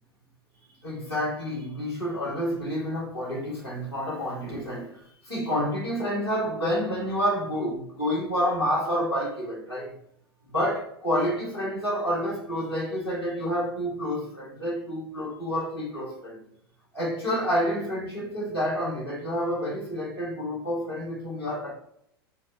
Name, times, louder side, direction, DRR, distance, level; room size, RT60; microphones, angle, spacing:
voice 1, 0.8-5.0 5.2-9.9 10.5-16.4 16.9-21.7, equal, 90° left, 1.5 m, -29 dB
4.5 x 2.0 x 2.7 m
figure-of-eight pair, 85°, 13 cm